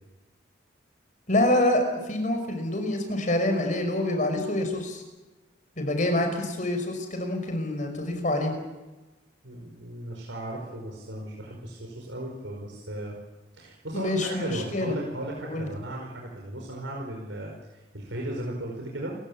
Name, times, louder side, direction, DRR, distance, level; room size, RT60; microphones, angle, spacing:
voice 1, 1.3-5.0 5.8-8.5 13.9-14.9 15.4-15.7, left 1 dB, 40° left, 5 dB, 5.5 m, -26 dB
voice 2, 9.4-13.1 13.5-17.5 17.9-19.2, right 1 dB, 75° right, -1 dB, 5.2 m, -36 dB
29.0 x 16.0 x 8.8 m, 1.1 s
head